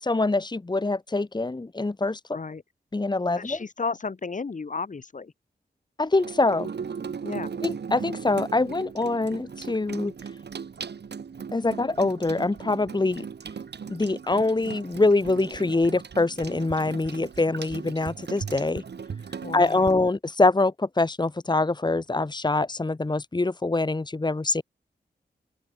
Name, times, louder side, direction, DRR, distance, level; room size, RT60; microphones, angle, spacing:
voice 1, 0.0-2.2 2.9-3.6 6.0-6.7 7.6-10.1 11.5-13.2 13.9-18.8 19.5-24.6, left 2 dB, 25° left, 2.1 m, -24 dB
voice 2, 2.3-2.6 3.4-5.3 7.2-7.5 19.4-20.0, left 4 dB, 50° left, 3.2 m, -33 dB
Water tap faucet / Sink (filling or washing), 6.1-19.9, right 6 dB, 75° right, 3.2 m, -38 dB
open air
wide cardioid pair, 125°, 17 cm